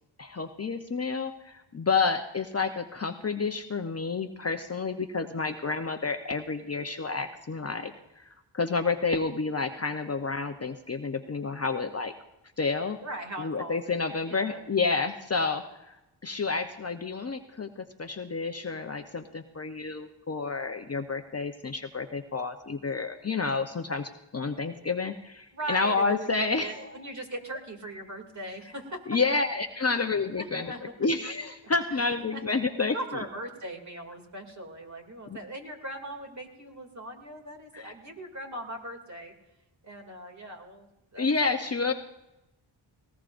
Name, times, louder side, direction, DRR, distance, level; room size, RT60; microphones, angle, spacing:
voice 1, 0.2-8.3 8.5-12.1 12.6-13.0 13.4-26.9 29.1-30.7 31.0-33.2 37.7-37.9 41.2-41.9, left 4 dB, 30° left, 6 dB, 0.8 m, -30 dB
voice 2, 13.0-14.6 25.5-29.0 29.8-30.0 30.4-30.9 31.9-32.4 32.9-39.3 39.8-40.9 41.1-41.3, right 1 dB, 35° right, 3 dB, 2.6 m, -40 dB
19.5 x 18.5 x 2.6 m, 0.94 s
cardioid pair, 75°, 48 cm